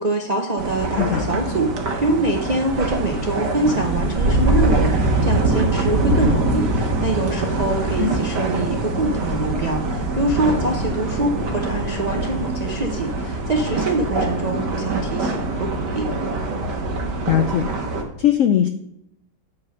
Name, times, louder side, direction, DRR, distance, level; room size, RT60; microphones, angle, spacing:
voice 1, 0.0-16.1, right 2 dB, 50° right, 1 dB, 0.5 m, -24 dB
sound 1, 0.6-18.0, right 2 dB, 75° right, 1.8 m, -23 dB
voice 2, 1.0-1.3 8.0-8.2 17.3-17.7 18.2-18.7, left 10 dB, 80° left, 9 dB, 0.7 m, -19 dB
8.8 x 4.2 x 6.3 m, 0.78 s
omnidirectional pair, 1.9 m